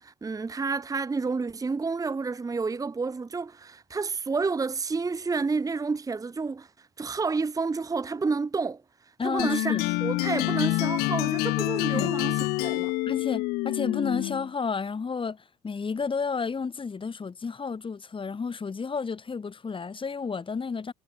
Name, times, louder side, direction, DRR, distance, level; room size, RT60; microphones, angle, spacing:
voice 1, 0.0-8.8 9.2-12.9, right 4 dB, 20° right, 1.0 m, -30 dB
voice 2, 9.2-9.8 11.9-12.1 13.1-20.9, left 5 dB, 30° left, 4.3 m, -31 dB
Game win, 9.4-14.5, left 22 dB, 65° left, 1.1 m, -27 dB
hypercardioid pair, 55°, 18 cm